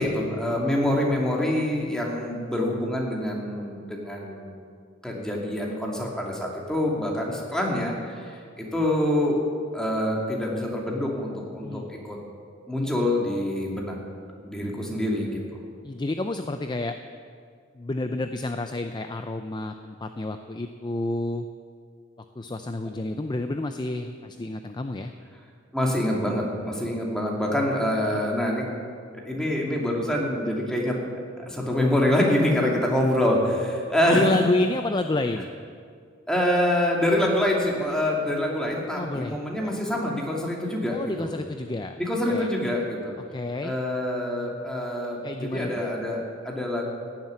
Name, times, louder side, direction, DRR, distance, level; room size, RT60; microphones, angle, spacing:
voice 1, 0.0-4.5 5.0-9.4 9.7-12.2 12.7-14.0 14.4-15.4 25.7-28.7 29.2-31.0 31.5-34.3 36.3-41.3 42.0-43.1 43.6-46.8, left 1 dB, 5° left, -2 dB, 2.5 m, -26 dB
voice 2, 15.8-17.0 17.7-21.5 22.4-25.1 34.1-35.5 38.9-39.7 40.9-42.0 42.3-42.5 43.3-43.7 45.2-45.8, left 2 dB, 25° left, 7 dB, 0.5 m, -29 dB
16.5 x 7.4 x 9.7 m, 2.1 s
head